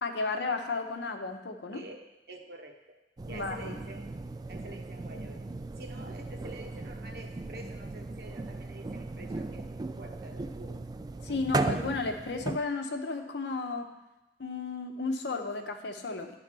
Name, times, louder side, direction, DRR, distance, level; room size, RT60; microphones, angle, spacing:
voice 1, 0.0-1.8 3.3-3.8 11.2-13.9 14.4-16.4, left 3 dB, 70° left, 5 dB, 0.8 m, -33 dB
voice 2, 1.7-3.0 3.3-4.1 4.5-5.5 5.8-9.7 10.0-10.8, right 1 dB, 60° right, 4 dB, 1.0 m, -47 dB
sound 1, 3.2-12.6, right 3 dB, 25° right, 0.3 m, -37 dB
10.5 x 3.9 x 6.1 m, 0.98 s
head